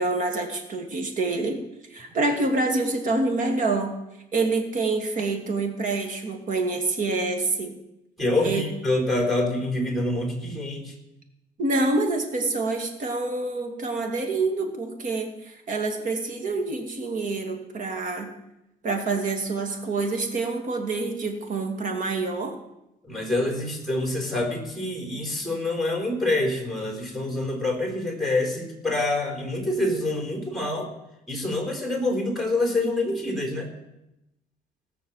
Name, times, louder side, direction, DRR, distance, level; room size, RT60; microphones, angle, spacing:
voice 1, 0.0-1.6 1.9-3.9 4.3-7.8 8.4-8.6 11.6-18.3 18.8-22.6, right 3 dB, 50° right, 4 dB, 2.7 m, -27 dB
voice 2, 8.2-10.9 23.1-30.9 31.3-33.7, left 2 dB, ahead, 2 dB, 4.0 m, -26 dB
18.5 x 6.5 x 7.5 m, 0.90 s
cardioid pair, 110°, 17 cm